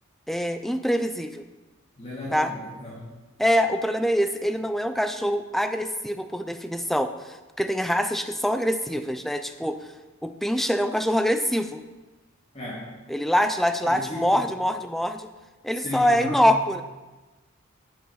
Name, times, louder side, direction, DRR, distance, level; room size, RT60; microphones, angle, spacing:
voice 1, 0.3-1.4 2.3-2.5 3.4-9.8 10.2-11.8 13.1-15.3 15.6-16.8, equal, ahead, 8 dB, 0.5 m, -24 dB
voice 2, 2.0-3.1 12.5-12.9 13.8-14.4 15.8-16.6, left 1 dB, 30° left, -6 dB, 2.2 m, -35 dB
11.0 x 7.1 x 5.7 m, 1.2 s
head